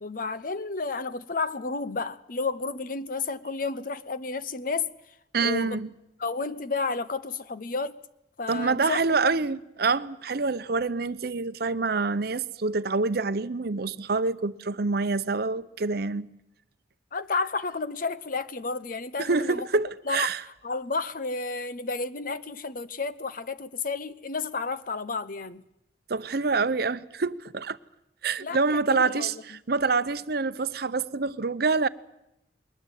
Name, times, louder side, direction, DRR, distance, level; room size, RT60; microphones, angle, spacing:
voice 1, 0.0-4.9 5.4-5.8 6.2-8.0 8.4-9.2 17.1-19.7 20.1-20.3 20.6-25.6 28.4-29.4, left 4 dB, 50° left, 0.9 m, -31 dB
voice 2, 5.3-5.9 8.5-16.3 19.2-20.4 26.1-27.8 28.2-31.9, right 4 dB, 60° right, 0.8 m, -26 dB
21.5 x 20.0 x 9.2 m
head